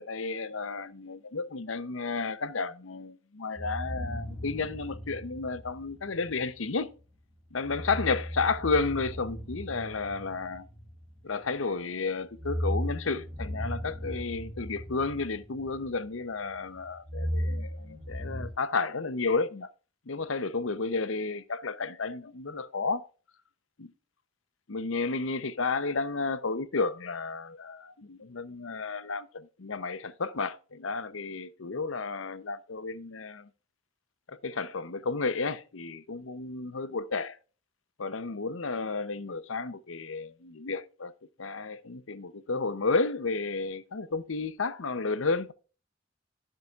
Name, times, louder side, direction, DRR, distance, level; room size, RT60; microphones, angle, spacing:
voice 1, 0.0-6.9 7.5-10.7 11.2-19.7 20.1-23.1 23.8-23.9 24.7-33.5 34.4-37.4 38.0-41.1 41.4-45.5, left 4 dB, 85° left, 0.8 m, -32 dB
Deep Bass Horror Loop (Reverb Version), 3.6-6.5 7.6-11.5 12.2-16.2 16.5-18.5, equal, 20° right, 3.1 m, -36 dB
13.0 x 7.6 x 2.4 m
head